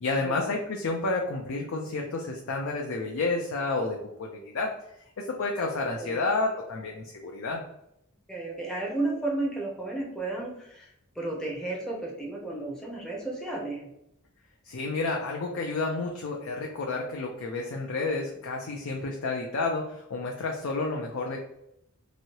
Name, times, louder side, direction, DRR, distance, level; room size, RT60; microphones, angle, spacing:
voice 1, 0.0-4.7 5.3-7.6 14.6-21.4, left 3 dB, 65° left, 1 dB, 0.5 m, -30 dB
voice 2, 8.3-13.9, right 2 dB, 5° left, -3 dB, 0.6 m, -33 dB
3.0 x 2.7 x 2.8 m, 0.80 s
head